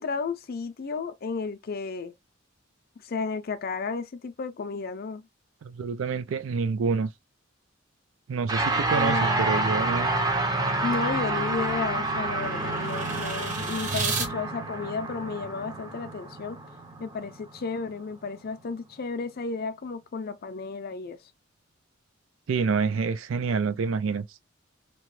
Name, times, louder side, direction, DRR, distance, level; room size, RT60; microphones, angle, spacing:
voice 1, 0.0-2.1 3.0-5.2 8.9-9.6 10.8-16.6 17.0-21.2, left 4 dB, 50° left, 0.5 m, -33 dB
voice 2, 5.6-7.1 8.3-10.1 22.5-24.2, right 5 dB, 75° right, 0.4 m, -27 dB
sound 1, 8.5-18.0, right 2 dB, 20° right, 0.6 m, -28 dB
sound 2, 11.4-14.3, right 4 dB, 40° right, 0.9 m, -34 dB
2.9 x 2.2 x 3.1 m
head